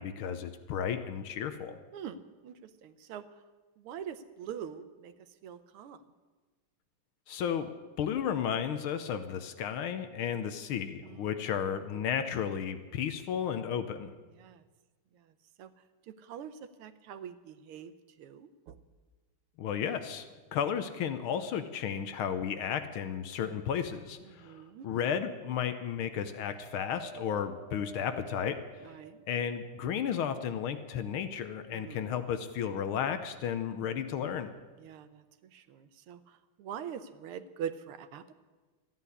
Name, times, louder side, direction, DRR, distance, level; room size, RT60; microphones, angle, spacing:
voice 1, 0.0-1.8 7.3-7.7 8.0-14.1 19.6-28.9 29.3-34.5, left 8 dB, 75° left, 10 dB, 1.6 m, -33 dB
voice 2, 1.9-3.2 3.8-5.1 5.4-6.0 11.0-11.4 14.3-14.6 15.1-15.3 15.6-15.7 16.1-17.9 18.2-18.8 24.2-24.9 28.8-29.3 31.7-32.1 34.8-38.3, right 8 dB, 85° right, 11 dB, 1.7 m, -44 dB
Wind, 26.3-29.8 30.4-31.5 32.2-32.3, right 3 dB, 55° left, 2.8 m, -50 dB
14.0 x 9.6 x 9.9 m, 1.3 s
omnidirectional pair, 2.4 m